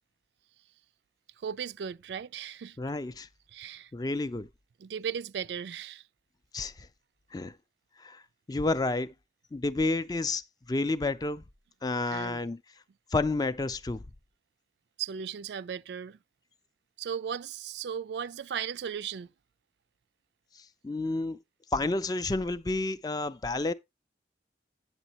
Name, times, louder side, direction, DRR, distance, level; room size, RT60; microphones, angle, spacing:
voice 1, 1.4-2.8 3.5-3.9 4.2-4.3 4.8-6.0 12.1-12.5 15.0-16.2 17.0-19.3, right 7 dB, 75° right, 0.3 m, -36 dB
voice 2, 2.8-3.3 3.9-4.5 6.5-6.9 7.3-7.5 8.0-8.2 8.5-9.1 9.5-10.4 10.7-11.4 11.8-12.6 13.1-14.0 20.8-21.4 21.7-23.7, left 2 dB, 20° left, 0.4 m, -30 dB
8.8 x 7.2 x 2.9 m
head